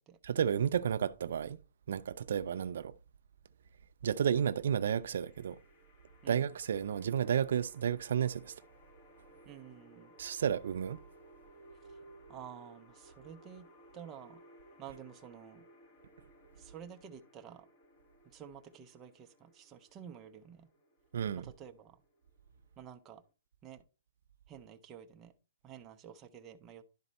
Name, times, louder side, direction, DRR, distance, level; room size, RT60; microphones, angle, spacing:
voice 1, 0.2-1.6 1.9-2.9 4.0-5.6 6.3-8.5 10.2-11.0 21.1-21.4, right 8 dB, 60° right, 0.4 m, -32 dB
sound 1, 4.3-23.3, right 1 dB, 30° left, 1.6 m, -60 dB
voice 2, 9.4-10.1 11.8-12.0 12.3-13.7 13.9-14.4 14.8-15.6 16.6-17.7 18.2-20.7 21.3-22.0 22.8-23.2 23.6-23.8 24.5-25.3 25.6-26.8, right 8 dB, 15° right, 0.6 m, -51 dB
11.0 x 4.2 x 4.0 m
hypercardioid pair, 165°, 0 cm